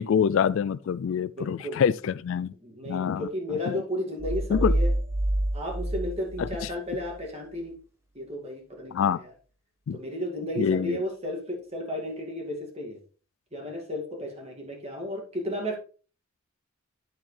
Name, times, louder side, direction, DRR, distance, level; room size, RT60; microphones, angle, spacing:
voice 1, 0.0-2.5 2.9-3.3 3.7-3.8 4.5-4.7 6.4-6.5 8.9-9.2 9.9-10.0 10.6-11.0, left 7 dB, 65° left, 0.3 m, -25 dB
voice 2, 1.4-1.9 2.6-4.9 5.5-7.7 8.1-9.3 9.9-13.0 13.5-15.8, left 1 dB, 30° right, 2.3 m, -33 dB
sound 1, 4.2-7.1, right 1 dB, 15° right, 1.2 m, -27 dB
9.8 x 7.5 x 3.3 m
head